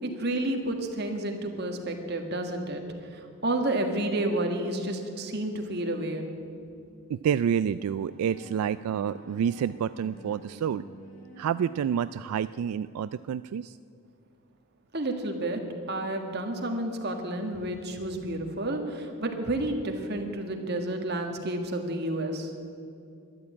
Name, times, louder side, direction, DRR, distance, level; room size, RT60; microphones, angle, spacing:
voice 1, 0.0-2.8 3.1-6.3 14.9-22.5, right 1 dB, 45° right, 3 dB, 1.7 m, -30 dB
voice 2, 7.1-10.8 11.4-13.8, right 8 dB, 80° right, 14 dB, 0.3 m, -28 dB
Bowed string instrument, 7.7-12.6, equal, 35° left, 2.9 m, -49 dB
13.0 x 11.0 x 8.5 m, 2.5 s
head